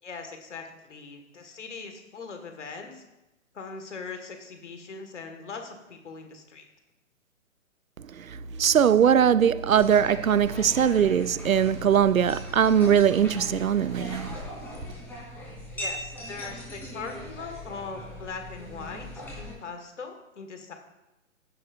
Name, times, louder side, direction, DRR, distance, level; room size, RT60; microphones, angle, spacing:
voice 1, 0.0-3.0 3.5-6.6 15.7-20.7, left 4 dB, 60° left, 1.8 m, -40 dB
voice 2, 8.2-14.4, right 8 dB, 85° right, 0.5 m, -21 dB
sound 1, 8.3-14.4, right 1 dB, 20° right, 0.6 m, -40 dB
sound 2, 9.7-19.6, equal, 5° left, 3.1 m, -40 dB
16.0 x 7.7 x 2.6 m
figure-of-eight pair, 130°, 40 cm